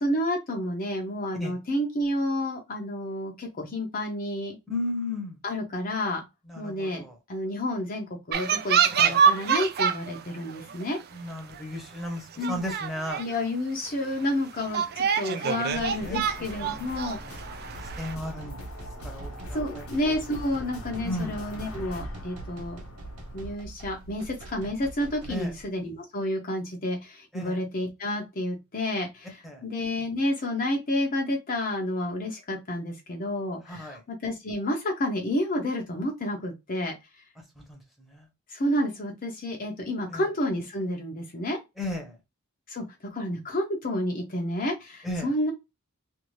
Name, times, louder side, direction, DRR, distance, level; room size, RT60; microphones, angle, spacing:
voice 1, 0.0-4.6 5.4-6.3 6.6-11.0 12.4-12.6 13.2-17.2 19.5-22.8 23.3-36.9 38.5-41.6 42.7-45.5, left 1 dB, 40° left, 0.7 m, -30 dB
voice 2, 4.7-5.4 6.5-7.2 9.0-9.2 11.1-13.2 15.5-16.2 16.6-17.5 18.0-18.6 19.0-19.8 21.0-21.4 25.3-25.5 27.3-27.6 29.4-29.6 33.7-34.0 37.6-38.3 40.1-40.2 41.8-42.2 45.0-45.3, left 1 dB, ahead, 0.9 m, -35 dB
sound 1, 8.3-10.2 10.5-10.8 11.5-11.6 12.0-12.1 12.4-13.4 13.9-14.0 14.6-18.1, right 7 dB, 50° right, 0.4 m, -26 dB
sound 2, 15.7-23.5, left 1 dB, 80° left, 0.9 m, -42 dB
sound 3, 17.6-25.7, right 2 dB, 80° right, 0.7 m, -43 dB
2.6 x 2.5 x 3.1 m
head